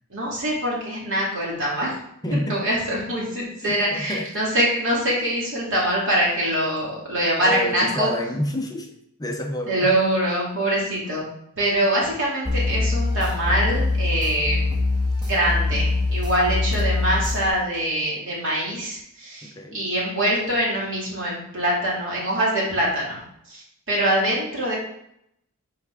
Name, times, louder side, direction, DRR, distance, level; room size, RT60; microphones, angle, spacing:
voice 1, 0.1-2.0 2.3-8.1 9.7-11.2 11.6-14.6 15.2-23.2 23.5-24.8, right 1 dB, 60° right, -5 dB, 2.5 m, -24 dB
voice 2, 2.2-2.6 3.6-4.5 7.4-8.9 9.2-9.9 19.4-19.8, left 1 dB, 15° left, 3 dB, 0.6 m, -28 dB
sound 1, 12.5-17.5, left 3 dB, 20° right, 1.5 m, -23 dB
5.9 x 4.7 x 3.7 m, 0.74 s
head